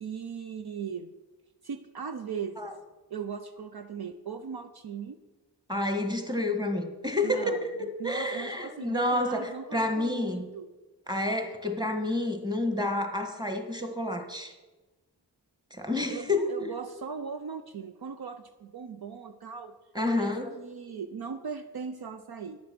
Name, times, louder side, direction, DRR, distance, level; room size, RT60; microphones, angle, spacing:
voice 1, 0.0-1.1 1.6-2.6 3.1-5.2 7.2-7.7 8.0-10.7 16.1-19.7 20.1-22.6, right 6 dB, 60° right, 8 dB, 0.6 m, -39 dB
voice 2, 5.7-10.4 11.1-14.5 15.7-16.7 19.9-20.5, left 1 dB, 10° right, 6 dB, 1.5 m, -29 dB
10.5 x 6.7 x 6.1 m, 1.2 s
cardioid pair, 45°, 43 cm